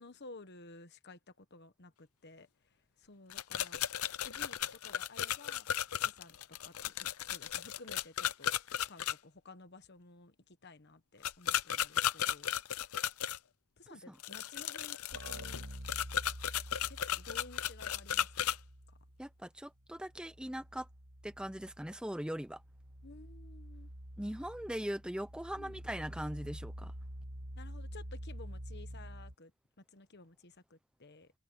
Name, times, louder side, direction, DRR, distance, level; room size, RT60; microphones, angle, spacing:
voice 1, 0.0-2.5 3.0-3.8 4.2-5.7 6.0-8.5 8.9-10.3 10.6-12.9 13.8-15.7 16.9-18.4 23.0-23.9 25.6-25.8 27.6-29.5 29.9-31.3, left 3 dB, 50° left, 1.3 m, -54 dB
sound 1, 3.3-9.1 11.2-13.4 14.2-18.6, left 10 dB, 75° left, 0.7 m, -35 dB
sound 2, 15.1-19.5 19.8-29.3, equal, 90° right, 5.1 m, -48 dB
voice 2, 19.2-20.9 21.2-22.6 24.2-26.9, equal, 5° right, 0.8 m, -40 dB
head